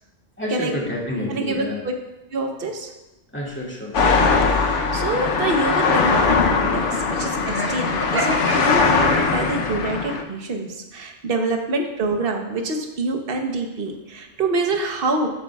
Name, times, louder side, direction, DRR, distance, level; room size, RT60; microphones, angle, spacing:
voice 1, 0.4-1.8 3.3-4.0, left 1 dB, 10° left, -3 dB, 2.1 m, -29 dB
voice 2, 1.3-1.9 2.3-2.9 4.4-15.3, right 2 dB, 55° right, 3 dB, 1.2 m, -26 dB
sound 1, 3.9-10.2, left 4 dB, 85° left, 1.1 m, -20 dB
Laughter, 7.4-9.7, right 1 dB, 20° right, 1.3 m, -29 dB
13.5 x 8.2 x 2.4 m, 0.98 s
omnidirectional pair, 1.2 m